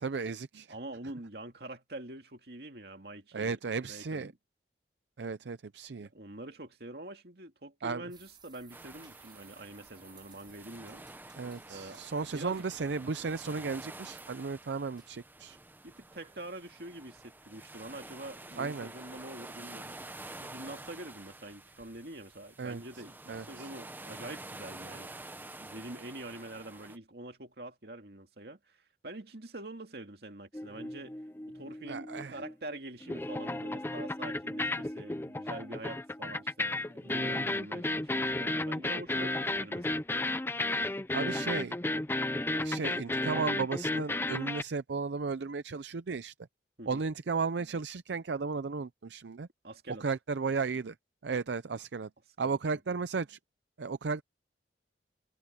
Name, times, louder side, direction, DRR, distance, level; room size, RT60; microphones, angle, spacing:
voice 1, 0.0-0.7 3.3-4.3 5.2-6.1 7.8-8.0 11.4-15.6 18.6-18.9 22.6-22.8 23.3-23.4 31.9-32.4 41.1-41.8 42.6-46.3 46.9-49.5 50.0-51.0 51.2-52.1 52.4-53.4 53.8-54.2, right 4 dB, 75° right, 0.5 m, -34 dB
voice 2, 0.7-4.4 6.0-11.0 11.7-12.7 15.8-20.0 20.4-25.1 25.6-31.2 31.5-40.0 46.8-47.0 49.6-50.1 52.4-53.0, right 1 dB, 60° right, 2.4 m, -45 dB
sound 1, 8.1-22.5, right 7 dB, 25° right, 6.8 m, -62 dB
sound 2, 8.7-27.0, right 2 dB, 10° right, 0.9 m, -49 dB
sound 3, 30.5-32.8 33.0-44.6, left 2 dB, 15° left, 0.6 m, -33 dB
head